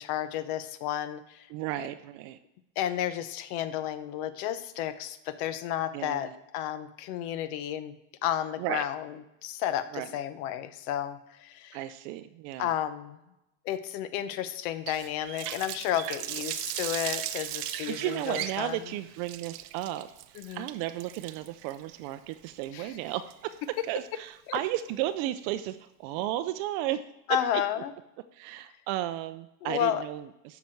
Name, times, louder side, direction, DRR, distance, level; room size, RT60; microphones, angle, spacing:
voice 1, 0.0-1.5 2.8-7.9 8.2-9.1 9.4-11.8 12.6-13.2 13.6-18.9 20.3-20.7 22.7-23.0 24.5-24.6 27.3-27.9 29.6-30.0, left 11 dB, 70° left, 12 dB, 0.9 m, -32 dB
voice 2, 1.5-2.4 5.9-6.3 8.6-8.8 9.9-10.1 11.7-12.7 17.9-20.1 20.5-23.6 23.9-27.4 28.3-30.6, right 14 dB, 50° right, 11 dB, 0.4 m, -34 dB
Water tap faucet, 14.9-23.8, right 15 dB, 85° right, 0.7 m, -38 dB
12.5 x 6.0 x 4.5 m, 0.89 s
cardioid pair, 160°, 46 cm